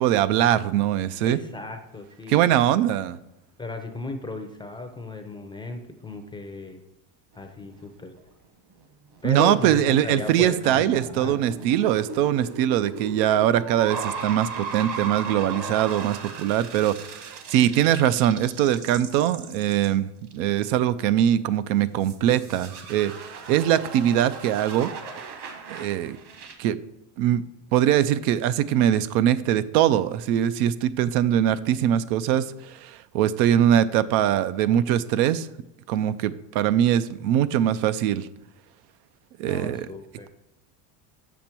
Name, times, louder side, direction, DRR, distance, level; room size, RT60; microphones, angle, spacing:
voice 1, 0.0-1.4 2.3-3.2 9.2-24.9 25.7-26.2 26.6-26.8 27.2-27.4 27.7-35.5 35.9-38.3 39.4-39.9, right 11 dB, 85° right, 14 dB, 0.6 m, -22 dB
voice 2, 1.3-2.5 3.6-6.8 7.3-8.1 9.2-11.4 39.5-40.3, left 3 dB, 10° left, 6 dB, 0.4 m, -35 dB
sound 1, 7.3-7.8 8.2-8.3 8.7-8.8 9.1-19.9 20.3-20.4 22.0-26.5, right 5 dB, 55° right, 1.5 m, -37 dB
7.2 x 6.1 x 4.4 m, 0.90 s
cardioid pair, 145°, 49 cm